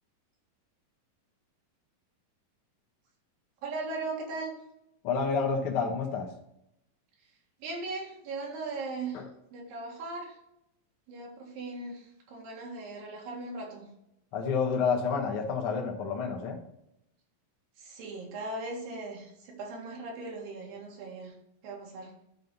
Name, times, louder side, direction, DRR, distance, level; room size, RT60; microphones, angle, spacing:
voice 1, 3.6-4.5 7.6-9.2 9.5-10.3 11.1-13.8 17.8-21.3 21.6-22.1, right 3 dB, 80° right, -1 dB, 3.6 m, -38 dB
voice 2, 5.0-6.3 9.1-9.3 14.3-16.6, left 5 dB, 55° left, 1 dB, 1.7 m, -29 dB
12.5 x 4.2 x 4.0 m, 0.81 s
omnidirectional pair, 4.0 m